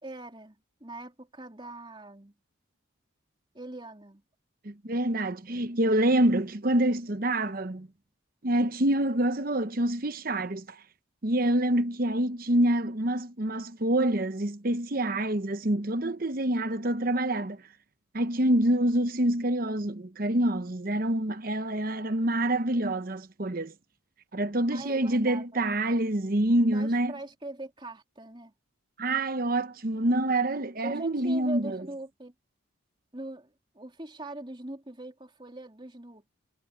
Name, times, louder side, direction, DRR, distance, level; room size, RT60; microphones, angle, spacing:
voice 1, 0.0-0.5 0.8-2.3 3.5-4.2 24.7-25.6 26.7-28.5 30.8-32.3 33.1-36.3, right 2 dB, 25° right, 3.3 m, -41 dB
voice 2, 4.6-7.9 8.4-10.8 11.2-17.6 18.1-23.7 24.3-27.1 29.0-31.8, right 1 dB, 45° right, 1.0 m, -26 dB
head